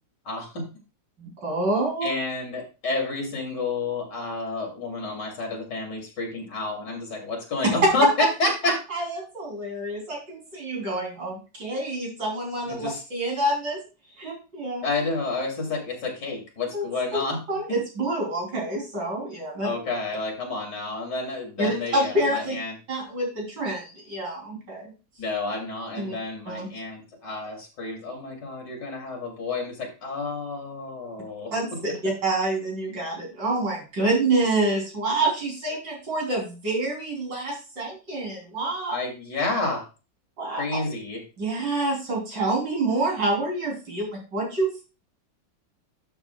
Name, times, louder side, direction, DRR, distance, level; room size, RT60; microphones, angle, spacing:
voice 1, 0.3-0.7 2.0-8.8 12.7-13.0 14.8-17.4 19.6-22.7 25.2-31.8 38.9-39.8 40.6-41.2, left 3 dB, 70° left, 0 dB, 3.6 m, -30 dB
voice 2, 1.2-2.1 7.8-7.9 8.6-13.8 14.2-14.8 16.7-16.9 17.1-17.2 17.5-19.7 21.6-22.5 22.9-24.9 25.9-26.1 26.5-26.7 31.5-38.9 40.4-40.6 41.4-44.8, right 2 dB, 90° right, -1 dB, 4.5 m, -27 dB
12.0 x 7.5 x 2.4 m, 0.31 s
omnidirectional pair, 1.9 m